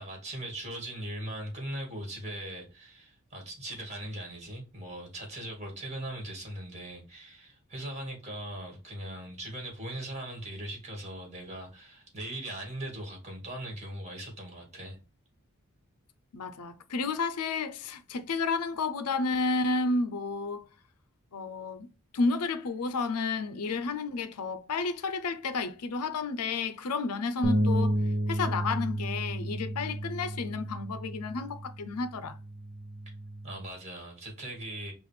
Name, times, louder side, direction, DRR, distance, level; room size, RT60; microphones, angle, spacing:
voice 1, 0.0-15.0 33.4-34.9, right 1 dB, 30° right, 2.0 m, -40 dB
voice 2, 16.3-20.7 21.3-21.9 22.1-27.9 28.3-32.4, left 3 dB, 90° left, 0.6 m, -31 dB
sound 1, 27.4-33.7, right 1 dB, 50° right, 0.7 m, -32 dB
5.6 x 2.5 x 3.2 m
head